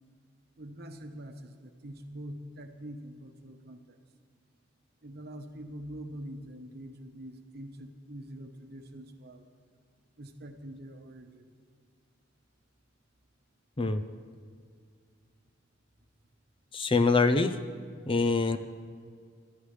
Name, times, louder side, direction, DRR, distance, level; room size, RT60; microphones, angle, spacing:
voice 1, 0.6-4.0 5.0-9.5 10.2-11.5, right 1 dB, 55° right, 6 dB, 1.0 m, -44 dB
voice 2, 16.7-17.6 18.1-18.6, left 3 dB, 25° left, 10 dB, 0.5 m, -24 dB
20.0 x 13.0 x 3.3 m, 2.1 s
head